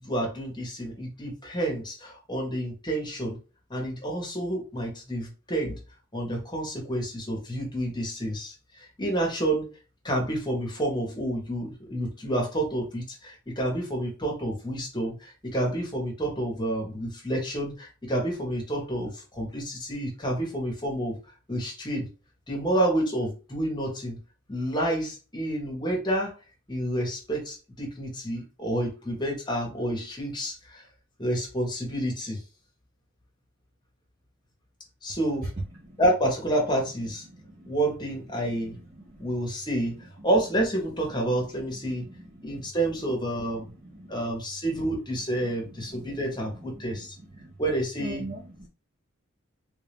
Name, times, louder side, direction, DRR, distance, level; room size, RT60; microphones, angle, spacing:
voice 1, 0.0-3.4 3.7-5.8 6.1-9.7 10.0-21.2 21.5-22.1 22.5-24.2 24.5-26.3 26.7-30.8 31.2-32.4 35.0-35.5 36.0-37.3 37.7-38.8 39.2-42.1 42.4-43.7 44.1-47.1 47.6-48.3, right 1 dB, 20° left, 0 dB, 1.2 m, -29 dB
voice 2, 37.3-37.7 39.1-39.3 41.5-41.6 42.1-42.3 43.6-44.2 45.4-45.5 45.9-46.0 46.8-47.0 47.4-47.5 48.0-48.7, right 1 dB, 40° right, -3 dB, 0.8 m, -42 dB
3.4 x 2.7 x 3.4 m, 0.33 s
head